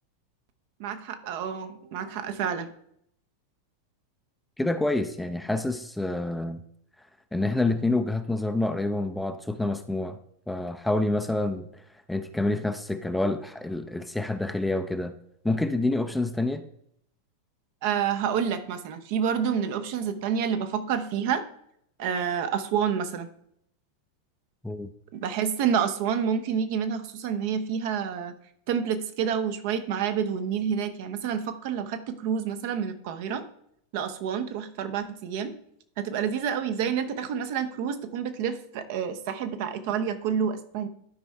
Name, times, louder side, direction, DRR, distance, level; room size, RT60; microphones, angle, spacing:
voice 1, 0.8-2.7 17.8-21.4 22.0-23.3 25.1-28.3 28.7-33.4 33.9-35.5 36.0-40.9, right 7 dB, 50° right, 9 dB, 0.8 m, -28 dB
voice 2, 4.6-6.6 7.3-10.2 10.5-15.2 15.4-16.6 24.6-24.9, left 2 dB, 5° left, 9 dB, 0.5 m, -27 dB
12.5 x 5.2 x 3.4 m, 0.72 s
figure-of-eight pair, 90°, 0 cm